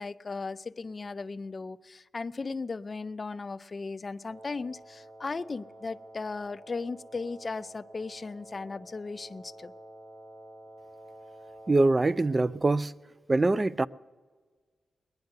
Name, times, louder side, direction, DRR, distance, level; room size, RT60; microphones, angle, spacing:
voice 1, 0.0-9.7, left 4 dB, 35° left, 0.5 m, -37 dB
Wind instrument woodwind instrument, 4.2-12.5, right 1 dB, 50° right, 4.7 m, -50 dB
voice 2, 11.7-12.9 13.3-13.9, right 2 dB, 25° right, 0.4 m, -23 dB
20.0 x 10.5 x 6.6 m
wide cardioid pair, 110°, 0 cm